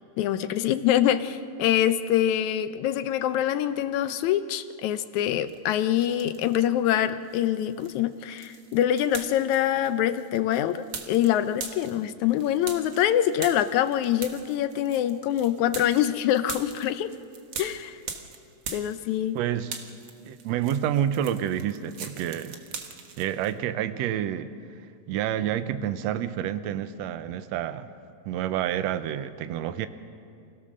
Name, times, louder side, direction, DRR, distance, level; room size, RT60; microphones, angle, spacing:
voice 1, 0.2-17.1 17.6-18.0 18.7-19.4, left 11 dB, 75° left, 11 dB, 2.0 m, -25 dB
sound 1, 5.5-6.6 7.0-19.4 19.6-23.5, right 6 dB, 50° right, 1.7 m, -41 dB
voice 2, 19.3-19.8 20.3-22.6 23.2-24.8 25.1-27.9 28.3-29.9, right 10 dB, 70° right, 11 dB, 1.8 m, -29 dB
28.5 x 16.5 x 6.5 m, 2.4 s
omnidirectional pair, 3.5 m